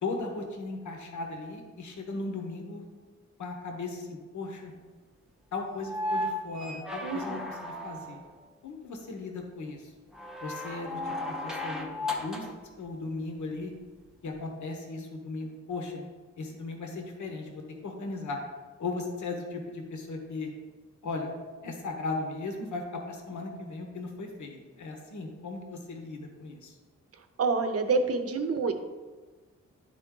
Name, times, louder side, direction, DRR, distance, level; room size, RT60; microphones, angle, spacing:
voice 1, 0.0-2.8 3.4-4.7 5.5-8.2 8.6-9.9 10.4-12.5 12.8-13.7 14.2-16.1 16.4-18.4 18.8-20.5 21.0-21.3 21.6-26.7, left 3 dB, 80° left, 3 dB, 1.0 m, -37 dB
sound 1, 5.8-8.3 10.1-12.6 14.3-14.4, left 1 dB, ahead, 0.6 m, -35 dB
voice 2, 27.4-28.7, right 4 dB, 55° right, 8 dB, 0.6 m, -27 dB
10.5 x 3.8 x 3.7 m, 1.3 s
wide cardioid pair, 160°, 29 cm